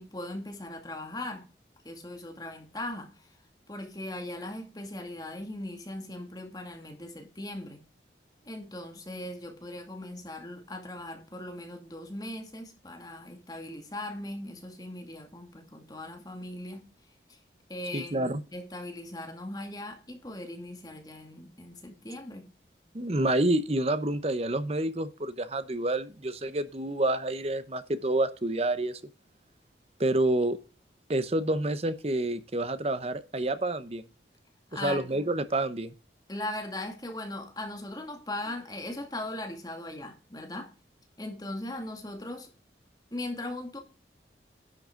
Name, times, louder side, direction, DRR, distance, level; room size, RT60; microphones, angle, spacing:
voice 1, 0.0-1.5 1.8-3.3 3.7-7.8 8.4-16.9 17.3-17.4 17.7-22.5 34.7-35.1 36.3-40.7 41.2-42.5 43.1-43.8, left 1 dB, 20° left, 2.2 m, -39 dB
voice 2, 17.9-18.4 22.9-29.0 30.0-30.6 31.1-34.0 34.8-35.9, right 1 dB, 35° right, 0.8 m, -28 dB
11.0 x 7.7 x 3.8 m
head